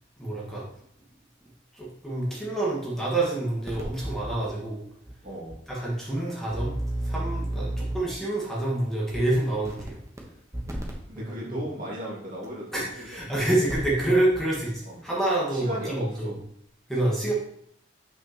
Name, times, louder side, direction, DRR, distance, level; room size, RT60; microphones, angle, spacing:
voice 1, 0.2-0.6 1.8-4.8 5.7-6.7 7.0-10.0 11.2-11.6 12.7-14.7 15.0-16.3 16.9-17.3, right 1 dB, ahead, -6 dB, 1.5 m, -27 dB
sound 1, 3.7-4.4 5.1-5.2 5.5-5.6 6.5-8.2 9.1-9.2 9.6-10.2 10.5-10.9 12.4-12.5 13.5-14.0 14.3-14.4, right 1 dB, 15° right, 0.9 m, -32 dB
voice 2, 5.2-5.6 7.6-7.8 10.6-13.1 14.8-15.0 15.5-16.4, right 1 dB, 45° right, -5 dB, 2.1 m, -37 dB
6.4 x 5.8 x 2.9 m, 0.71 s
head